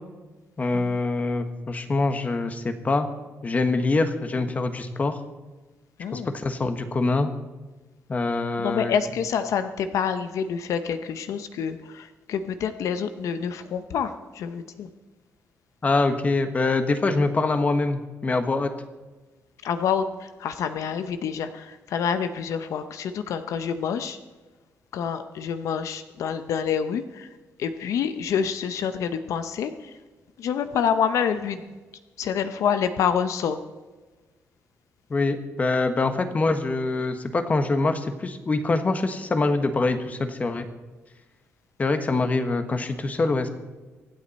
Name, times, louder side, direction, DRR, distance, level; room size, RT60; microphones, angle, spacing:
voice 1, 0.6-3.1 3.4-5.2 6.1-7.3 8.1-8.9 15.8-18.7 35.1-40.7 41.8-43.5, left 3 dB, 30° left, 8 dB, 1.2 m, -24 dB
voice 2, 6.0-6.3 8.6-14.9 19.6-24.2 24.9-27.3 27.6-29.9 30.4-31.6 32.2-33.6, left 7 dB, 80° left, 10 dB, 0.8 m, -27 dB
25.0 x 8.5 x 4.2 m, 1.3 s
cardioid pair, 130°, 5 cm